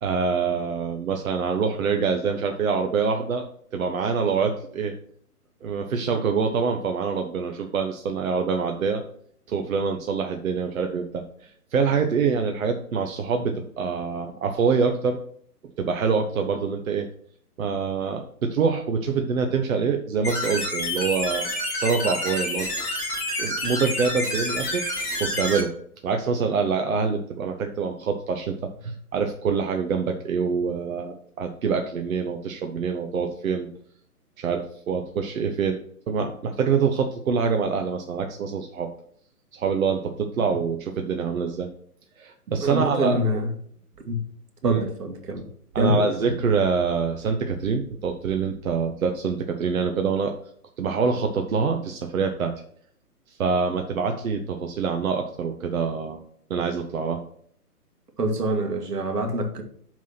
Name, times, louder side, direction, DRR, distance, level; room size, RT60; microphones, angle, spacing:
voice 1, 0.0-3.4 3.7-4.9 5.6-9.0 9.5-15.2 15.8-17.1 17.6-22.7 23.4-24.8 25.2-25.7 26.0-28.5 28.8-33.7 34.4-35.8 36.1-38.9 39.5-41.7 42.2-43.2 44.6-44.8 45.7-50.3 50.8-52.5 53.3-56.2 56.5-57.2, right 5 dB, 60° right, 1.0 m, -25 dB
sound 1, 20.2-25.6, left 1 dB, 5° left, 3.3 m, -28 dB
voice 2, 42.6-43.5 44.1-44.2 44.6-45.5 45.8-46.2 58.2-59.6, equal, 80° right, 1.9 m, -25 dB
5.8 x 4.8 x 5.8 m
hypercardioid pair, 140°, 46 cm